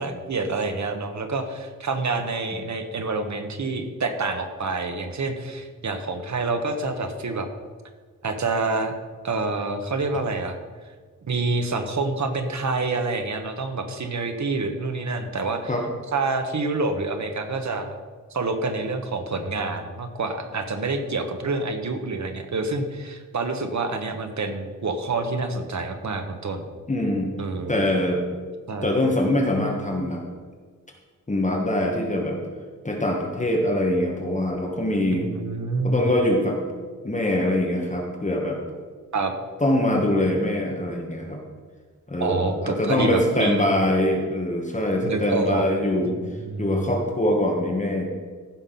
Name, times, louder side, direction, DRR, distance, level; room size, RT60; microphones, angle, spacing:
voice 1, 0.0-7.5 8.2-8.9 9.2-10.6 11.2-15.7 16.1-18.0 18.3-26.6 27.4-27.8 28.7-28.9 35.1-36.0 39.1-39.3 42.2-43.7 45.0-45.7 46.0-47.0, right 3 dB, 55° right, 6 dB, 1.2 m, -27 dB
voice 2, 26.9-27.3 27.7-28.2 28.8-30.2 31.3-32.4 32.8-35.3 35.8-36.6 37.0-38.6 39.6-41.4 42.1-46.2 46.6-48.1, left 1 dB, 20° left, 0 dB, 1.4 m, -23 dB
15.0 x 5.8 x 5.8 m, 1.5 s
wide cardioid pair, 165°, 33 cm